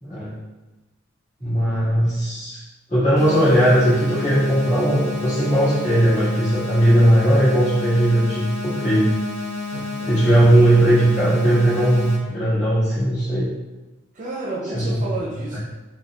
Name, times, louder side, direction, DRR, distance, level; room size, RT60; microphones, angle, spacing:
voice 1, 0.0-0.3 1.4-2.6 2.9-9.1 10.0-13.5 14.7-15.0 15.5-15.6, right 1 dB, 35° left, -11 dB, 1.5 m, -18 dB
sound 1, 3.2-12.2, left 4 dB, 65° left, 0.7 m, -30 dB
voice 2, 9.7-10.1 14.1-15.6, right 2 dB, 40° right, -3 dB, 0.5 m, -31 dB
4.2 x 2.3 x 2.3 m, 1.1 s
head